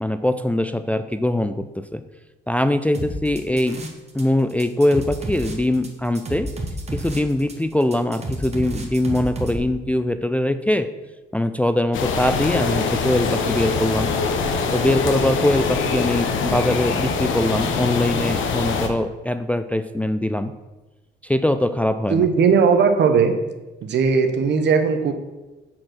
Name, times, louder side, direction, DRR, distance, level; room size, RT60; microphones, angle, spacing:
voice 1, 0.0-2.0 2.5-3.8 4.1-6.5 6.9-10.9 11.3-14.1 14.7-20.5 21.2-22.3, left 1 dB, 5° left, 10 dB, 0.4 m, -22 dB
sound 1, 2.9-4.2 4.5-9.6, right 1 dB, 35° right, 1.6 m, -30 dB
sound 2, 11.9-18.9, left 5 dB, 75° left, 1.0 m, -23 dB
voice 2, 22.1-23.4 23.8-25.1, right 5 dB, 60° right, 7 dB, 1.0 m, -17 dB
7.5 x 4.4 x 6.1 m, 1.1 s
cardioid pair, 90°, 20 cm